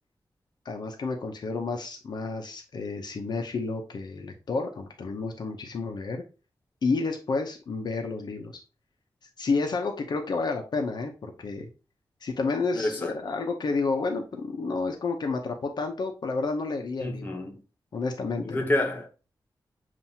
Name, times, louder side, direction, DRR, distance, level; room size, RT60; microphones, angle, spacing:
voice 1, 0.7-6.2 6.8-8.5 9.4-11.7 12.2-17.4 17.9-18.7, left 4 dB, 60° left, 0.6 m, -30 dB
voice 2, 12.7-13.1 17.0-17.6 18.4-19.1, left 1 dB, 20° left, 0.8 m, -28 dB
7.1 x 2.5 x 2.7 m
wide cardioid pair, 165°, 8 cm